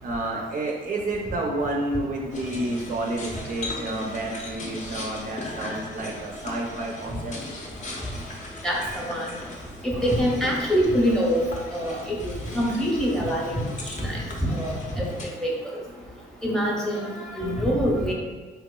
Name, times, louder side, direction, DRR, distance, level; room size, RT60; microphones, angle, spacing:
voice 1, 0.0-7.4, right 2 dB, 40° right, -1 dB, 0.4 m, -30 dB
sound 1, 2.3-15.2, left 2 dB, 40° left, 0.6 m, -38 dB
voice 2, 8.6-9.3 9.8-11.4 11.7-14.2 14.5-15.1 15.4-15.5 16.4-18.1, equal, 5° left, -2 dB, 0.7 m, -25 dB
3.3 x 2.9 x 2.2 m, 1.4 s
cardioid pair, 90°, 20 cm